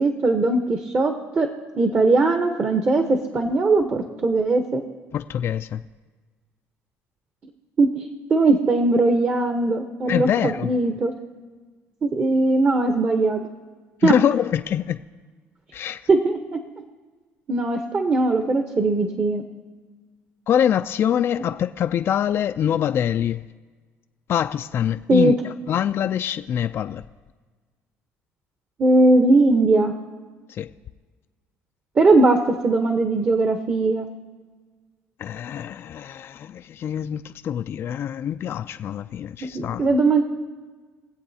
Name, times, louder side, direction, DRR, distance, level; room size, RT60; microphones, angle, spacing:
voice 1, 0.0-1.5 1.8-4.8 7.8-8.0 8.3-11.1 12.0-13.4 14.0-14.1 16.1-16.6 17.5-19.4 25.1-25.4 28.8-29.9 32.0-34.1 39.5-40.2, right 2 dB, 35° right, 5 dB, 0.9 m, -19 dB
voice 2, 5.1-5.8 10.1-10.7 14.0-15.0 15.7-16.0 20.5-23.5 24.3-27.0 30.5-30.7 35.2-39.9, left 9 dB, 45° left, 10 dB, 0.3 m, -24 dB
23.0 x 7.9 x 2.8 m, 1.4 s
cardioid pair, 100°, 5 cm